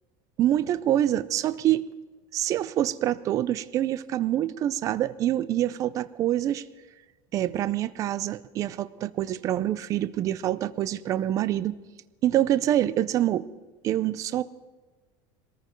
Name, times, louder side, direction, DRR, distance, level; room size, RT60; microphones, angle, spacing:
voice 1, 0.4-1.8 2.3-6.6 7.3-11.8 12.2-13.5 13.8-14.4, right 12 dB, 30° right, 16 dB, 0.4 m, -26 dB
21.5 x 14.0 x 4.5 m, 1.2 s
cardioid pair, 175°, 12 cm